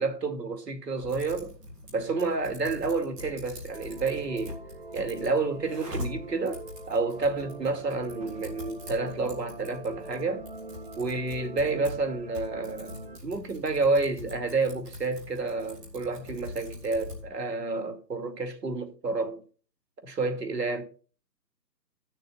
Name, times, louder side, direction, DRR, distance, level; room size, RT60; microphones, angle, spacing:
voice 1, 0.0-1.5 1.9-4.6 4.9-10.5 11.0-13.0 13.2-19.4 20.0-20.8, right 3 dB, 75° right, 2.5 m, -29 dB
Typing, 1.0-17.3, left 2 dB, 15° right, 2.7 m, -43 dB
sound 1, 3.7-13.2, right 3 dB, 35° right, 0.7 m, -45 dB
13.0 x 6.6 x 4.1 m
hypercardioid pair, 160°, 50 cm